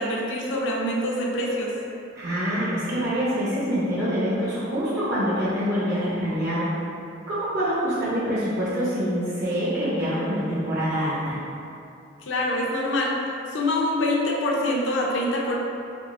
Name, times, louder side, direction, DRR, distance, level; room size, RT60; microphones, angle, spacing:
voice 1, 0.0-1.7 12.2-13.1 13.5-15.6, left 1 dB, 70° left, -3 dB, 0.6 m, -25 dB
voice 2, 2.1-6.7 7.3-11.4, equal, 55° right, -10 dB, 0.7 m, -25 dB
3.6 x 3.3 x 2.5 m, 2.6 s
head